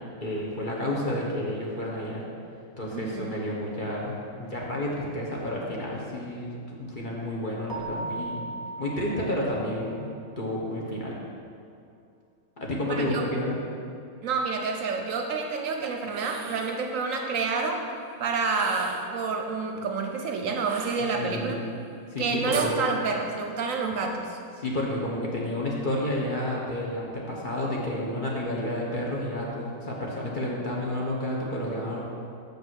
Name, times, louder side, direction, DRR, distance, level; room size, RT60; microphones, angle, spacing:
voice 1, 0.2-2.2 2.8-8.4 8.8-10.1 10.4-11.1 12.6-13.6 21.2-21.6 22.1-22.9 24.6-32.1, left 1 dB, 35° left, -4 dB, 1.2 m, -30 dB
voice 2, 2.9-3.3 12.9-13.2 14.2-17.8 18.2-21.6 22.2-24.4, right 4 dB, 65° right, 3 dB, 1.0 m, -28 dB
Keyboard (musical), 7.7-10.1, right 2 dB, 25° right, 0.5 m, -37 dB
sound 1, 16.0-16.8 18.5-19.2 20.6-21.5 22.5-22.8, right 7 dB, 90° right, 1.1 m, -40 dB
6.8 x 5.4 x 6.1 m, 2.5 s
omnidirectional pair, 1.6 m